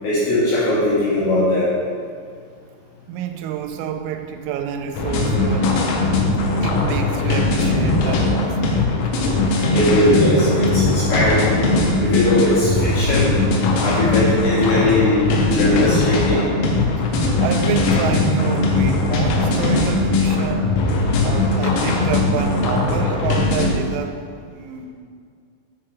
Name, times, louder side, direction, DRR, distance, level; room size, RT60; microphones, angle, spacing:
voice 1, 0.0-1.7 9.7-11.6 12.0-13.3 13.8-16.4, left 1 dB, 60° left, -11 dB, 3.3 m, -19 dB
voice 2, 3.1-5.8 6.6-9.0 17.0-20.8 21.2-24.9, right 8 dB, 85° right, 6 dB, 3.2 m, -28 dB
sound 1, 4.9-23.7, left 2 dB, 80° left, 2.5 m, -19 dB
7.6 x 4.9 x 4.6 m, 2.1 s
omnidirectional pair, 5.8 m